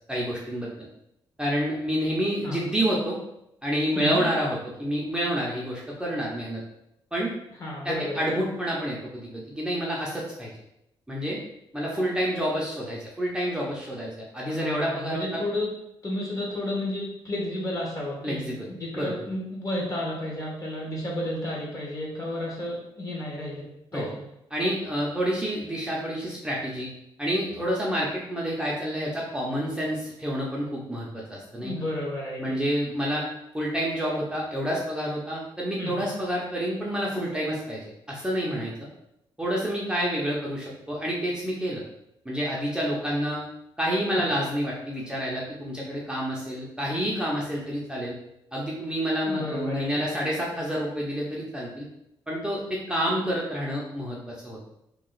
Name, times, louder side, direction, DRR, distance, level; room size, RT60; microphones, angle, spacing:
voice 1, 0.1-0.7 1.4-3.2 3.6-6.6 7.1-7.3 7.8-10.5 11.1-11.4 11.7-15.4 18.2-18.7 18.9-19.2 23.9-24.1 24.5-26.9 27.2-31.7 32.4-33.3 33.5-38.7 39.4-41.8 42.2-43.4 43.8-48.2 48.5-51.9 52.3-54.6, equal, 10° right, -4 dB, 0.7 m, -28 dB
voice 2, 7.6-8.3 14.5-15.7 16.0-23.6 23.9-24.2 31.6-32.6 35.8-36.0 44.1-44.3 49.2-50.1, left 1 dB, 35° left, -3 dB, 1.3 m, -32 dB
3.0 x 2.3 x 3.9 m, 0.82 s
cardioid pair, 90°, 10 cm